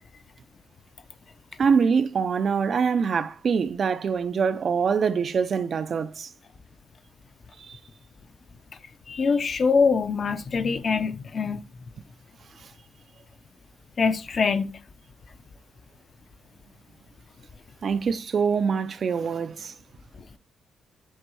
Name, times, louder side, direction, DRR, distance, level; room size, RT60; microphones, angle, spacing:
voice 1, 1.6-6.3 7.6-7.8 17.8-19.7, right 6 dB, 45° right, 0.5 m, -24 dB
voice 2, 9.1-11.6 14.0-14.7 20.2-20.3, left 5 dB, 40° left, 0.7 m, -23 dB
7.9 x 3.6 x 6.2 m
cardioid pair, 135°, 0 cm